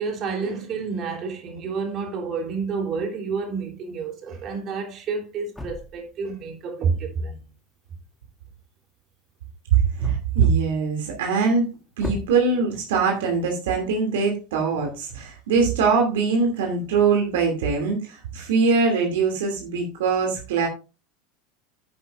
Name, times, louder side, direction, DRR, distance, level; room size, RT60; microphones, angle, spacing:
voice 1, 0.0-7.4, right 5 dB, 40° right, 3.4 m, -29 dB
sound 1, 2.4-2.6 4.5-4.6 4.9-6.8 9.7-11.0 11.5-11.6 11.9-13.2, left 2 dB, 10° left, 2.2 m, -38 dB
voice 2, 9.7-11.7 12.0-20.7, right 5 dB, 70° right, 2.6 m, -22 dB
10.5 x 10.0 x 2.5 m
figure-of-eight pair, 80°, 0 cm